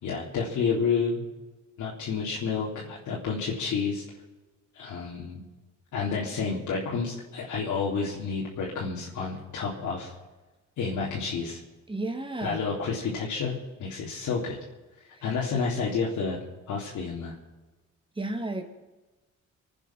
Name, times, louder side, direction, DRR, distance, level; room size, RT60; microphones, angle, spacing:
voice 1, 0.0-1.2 1.8-4.0 4.7-5.4 5.9-10.1 10.8-11.6 12.4-14.6 15.2-16.4 16.7-17.3, left 5 dB, 75° left, -5 dB, 3.7 m, -30 dB
voice 2, 11.9-12.8 15.1-15.3 18.1-18.6, right 2 dB, 15° right, 5 dB, 2.8 m, -33 dB
25.5 x 9.1 x 6.1 m, 1.1 s
cardioid pair, 90°, 30 cm